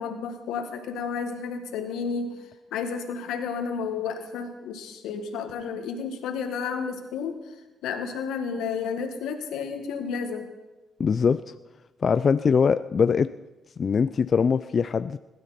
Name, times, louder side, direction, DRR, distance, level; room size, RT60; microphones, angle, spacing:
voice 1, 0.0-2.4 2.7-7.4 7.8-10.5, left 6 dB, 90° left, 5 dB, 1.9 m, -31 dB
voice 2, 11.0-11.4 12.0-13.3 13.8-15.2, left 6 dB, 45° left, 12 dB, 0.4 m, -22 dB
20.5 x 12.5 x 4.3 m, 1.1 s
cardioid pair, 90°, 0 cm